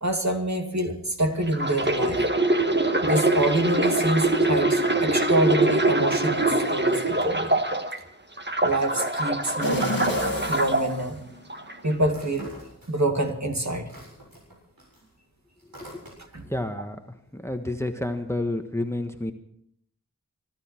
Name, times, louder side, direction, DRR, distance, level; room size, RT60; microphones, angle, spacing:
voice 1, 0.0-2.2 3.0-7.6 8.6-11.2 11.8-12.5 12.9-13.9 16.3-16.5, right 1 dB, 50° right, 3 dB, 2.5 m, -26 dB
sound 1, 1.5-8.0 8.4-10.8 11.5-11.7, right 2 dB, 30° right, 1.5 m, -23 dB
sound 2, 9.6-11.7 12.2-12.3, left 2 dB, 85° left, 2.1 m, -32 dB
sound 3, 12.1-13.3 13.6-16.5, right 1 dB, 85° right, 7.5 m, -47 dB
voice 2, 16.5-17.0 17.3-19.3, left 1 dB, 10° left, 6 dB, 1.4 m, -29 dB
25.0 x 12.5 x 4.5 m, 0.68 s
wide cardioid pair, 40°, 34 cm